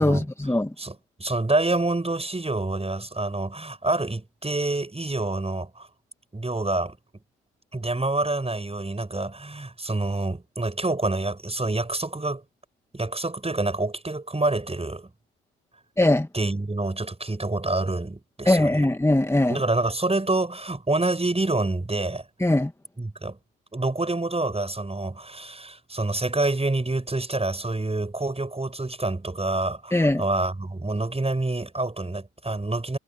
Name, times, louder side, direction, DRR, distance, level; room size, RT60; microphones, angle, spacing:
voice 1, 0.0-0.7 16.0-16.3 18.5-19.6 22.4-22.7 29.9-30.2, left 1 dB, 5° left, 2.0 m, -21 dB
voice 2, 0.8-5.9 6.3-7.0 7.7-12.4 12.9-15.1 16.3-18.8 19.5-22.2 23.0-23.4 23.7-33.0, right 2 dB, 15° right, 6.6 m, -27 dB
hypercardioid pair, 55°, 40 cm